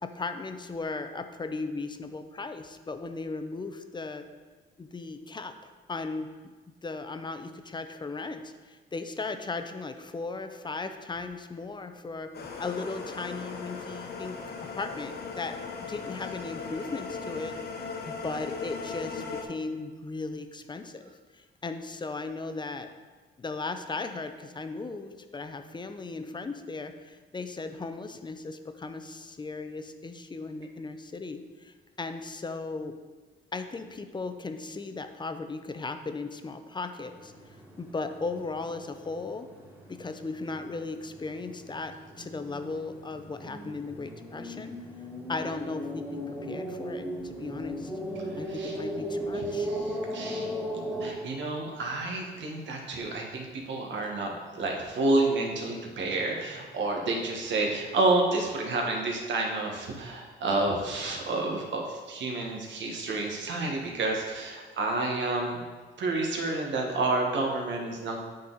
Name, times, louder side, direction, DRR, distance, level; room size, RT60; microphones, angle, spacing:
voice 1, 0.0-4.3 4.8-6.5 6.8-14.4 14.7-15.6 15.9-17.5 18.1-21.0 21.3-22.9 23.4-32.9 33.5-37.3 37.8-39.5 39.9-44.7 45.3-47.9 48.4-49.7, left 3 dB, 20° left, 8 dB, 0.6 m, -37 dB
sound 1, 12.3-19.4, left 4 dB, 55° left, 1.0 m, -38 dB
sound 2, 37.0-51.1, equal, 10° right, 2.0 m, -37 dB
voice 2, 48.4-48.8 49.3-50.5 51.0-65.6 66.0-68.2, right 2 dB, 65° right, 1 dB, 1.4 m, -29 dB
8.4 x 4.0 x 4.0 m, 1.4 s
cardioid pair, 90°, 20 cm